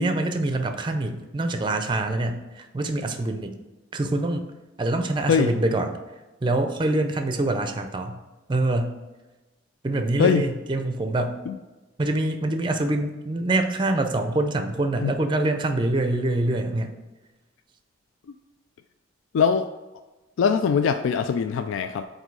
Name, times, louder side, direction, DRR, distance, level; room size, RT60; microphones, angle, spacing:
voice 1, 0.0-3.6 3.9-4.5 4.8-6.0 6.4-8.2 8.5-9.0 9.8-11.4 12.0-16.9, right 2 dB, 25° right, 7 dB, 0.4 m, -25 dB
voice 2, 19.3-19.7 20.4-22.0, left 6 dB, 85° left, 8 dB, 0.3 m, -21 dB
8.0 x 2.7 x 4.6 m, 1.1 s
head